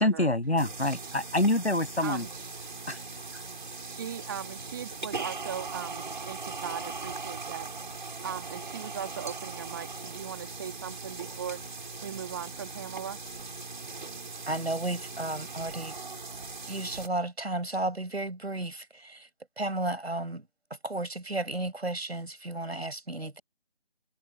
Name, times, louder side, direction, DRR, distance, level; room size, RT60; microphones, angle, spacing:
voice 1, 0.0-2.3 2.9-3.0 3.3-3.4, left 1 dB, 80° left, 7.4 m, -26 dB
sound 1, 0.6-17.1, right 4 dB, 50° right, 6.6 m, -40 dB
voice 2, 0.8-1.1 2.0-2.3 3.8-7.7 8.2-11.6 12.0-13.2, right 8 dB, 20° right, 2.9 m, -39 dB
voice 3, 14.5-16.0 16.7-19.3 19.6-20.4 20.8-23.4, right 2 dB, 75° right, 6.7 m, -33 dB
figure-of-eight pair, 160°, 32 cm